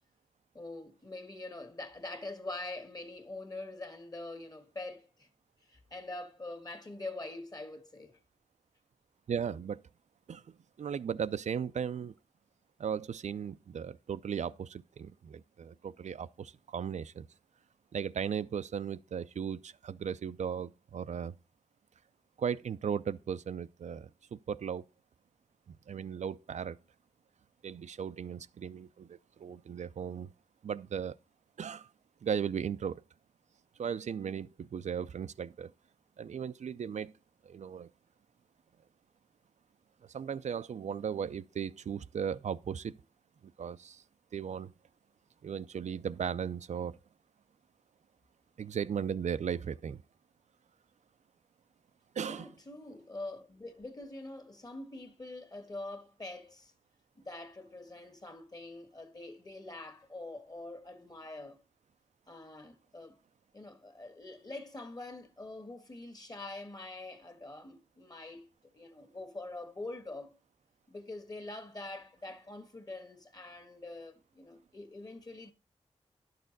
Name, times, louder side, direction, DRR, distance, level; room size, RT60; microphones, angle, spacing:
voice 1, 0.5-5.3 5.6-8.2 52.3-56.7 57.1-61.6 62.3-63.2 63.5-68.5 68.7-70.4 70.9-75.5, left 2 dB, 35° left, 1.6 m, -44 dB
voice 2, 9.3-9.8 10.3-10.4 10.8-12.1 12.8-17.2 17.9-21.3 22.4-24.8 25.9-26.8 27.6-30.3 30.6-31.1 31.6-31.9 32.2-33.0 33.8-35.7 36.2-37.1 37.4-37.9 40.1-43.0 43.6-44.0 44.3-44.7 45.4-47.0 48.6-50.0 52.2-52.5, right 7 dB, 90° right, 0.5 m, -36 dB
11.0 x 6.6 x 4.0 m
wide cardioid pair, 120°, 12 cm